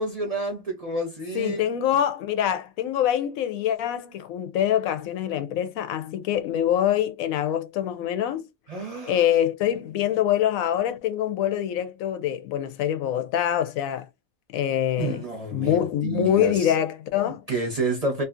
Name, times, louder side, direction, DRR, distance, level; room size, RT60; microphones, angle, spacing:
voice 1, 0.0-1.6 8.7-9.3 15.0-16.7 17.5-18.2, right 2 dB, 40° right, 0.6 m, -29 dB
voice 2, 1.3-8.5 9.1-14.1 14.5-15.2 15.5-17.4, left 10 dB, 90° left, 1.0 m, -25 dB
2.6 x 2.5 x 2.4 m
omnidirectional pair, 1.4 m